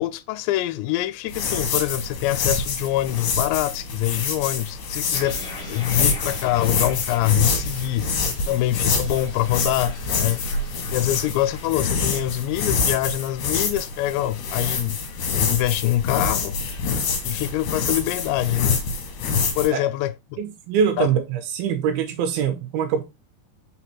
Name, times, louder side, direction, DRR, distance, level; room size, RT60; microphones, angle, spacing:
voice 1, 0.0-5.4 5.7-8.1 8.5-10.4 10.9-15.0 15.3-16.6 17.2-18.8 19.6-20.4 21.0-21.1, left 14 dB, 85° left, 2.7 m, -24 dB
sound 1, 1.3-19.7, left 4 dB, 65° left, 2.7 m, -26 dB
sound 2, 5.1-12.1, left 3 dB, 40° left, 2.3 m, -42 dB
voice 2, 20.4-23.0, right 7 dB, 80° right, 2.4 m, -23 dB
6.1 x 4.1 x 4.2 m
omnidirectional pair, 5.1 m